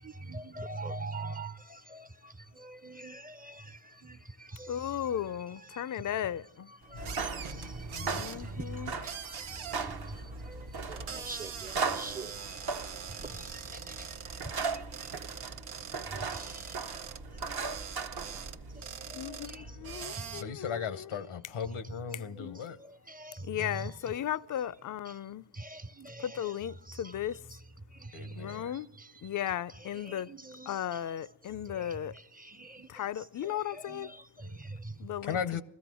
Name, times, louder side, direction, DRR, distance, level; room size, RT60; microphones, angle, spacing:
voice 1, 0.0-5.2 5.5-6.1 6.7-15.1 16.3-16.8 17.3-17.6 18.2-18.4 18.7-19.8 20.1-20.5 22.2-22.5 22.8-23.9 25.1-25.2 25.5-26.6 26.9-27.2 27.9-29.1 29.8-31.0 31.7-32.9 33.4-35.0, right 2 dB, 20° right, 0.6 m, -45 dB
voice 2, 4.7-6.7 8.0-8.9 19.1-21.1 22.4-22.6 23.4-25.5 26.2-27.4 28.4-28.9 29.2-30.3 30.7-32.1 32.9-34.1 35.0-35.4, left 10 dB, 40° left, 0.5 m, -36 dB
voice 3, 6.9-8.5 13.3-14.0 20.3-22.8 28.1-28.7 34.4-34.6 35.2-35.6, left 7 dB, 85° left, 0.9 m, -38 dB
sound 1, 6.9-18.8, right 4 dB, 50° right, 0.9 m, -38 dB
sound 2, 7.0-20.4, right 5 dB, 85° right, 0.8 m, -43 dB
16.0 x 14.0 x 6.1 m
cardioid pair, 40°, 48 cm